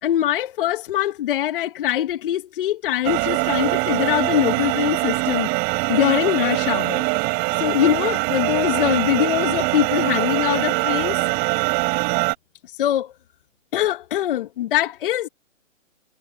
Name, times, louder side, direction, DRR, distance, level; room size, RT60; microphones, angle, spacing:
voice 1, 0.0-5.5 5.9-7.1 7.5-11.2 12.7-13.1 13.7-15.3, left 12 dB, 40° left, 1.4 m, -22 dB
sound 1, 3.0-12.3, right 30 dB, 25° right, 5.7 m, -23 dB
hypercardioid pair, 150°, 39 cm